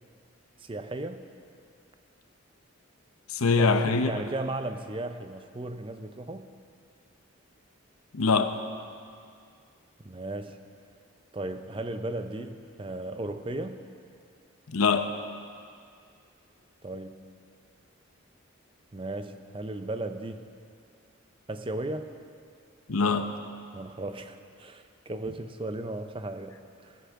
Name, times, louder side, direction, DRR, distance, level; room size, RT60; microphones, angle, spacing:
voice 1, 0.6-1.3 3.5-6.5 10.0-10.6 11.3-13.8 16.8-17.2 18.9-20.5 21.5-22.1 23.7-27.0, right 2 dB, 25° right, 8 dB, 0.6 m, -36 dB
voice 2, 3.3-4.1 8.1-8.5 14.7-15.1 22.9-23.4, left 4 dB, 85° left, 8 dB, 0.8 m, -23 dB
17.0 x 16.5 x 3.7 m, 2.3 s
head